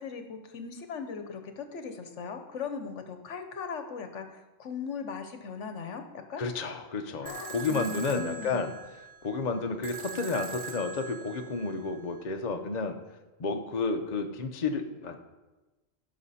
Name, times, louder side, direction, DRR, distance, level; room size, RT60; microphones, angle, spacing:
voice 1, 0.0-6.4 7.2-8.6, left 6 dB, 70° left, 7 dB, 1.2 m, -39 dB
voice 2, 6.4-8.7 9.2-13.0 13.4-15.2, left 4 dB, 40° left, 5 dB, 0.7 m, -31 dB
sound 1, 7.3-12.3, right 7 dB, 65° right, 1.1 m, -42 dB
16.0 x 6.0 x 4.2 m, 1.1 s
omnidirectional pair, 1.3 m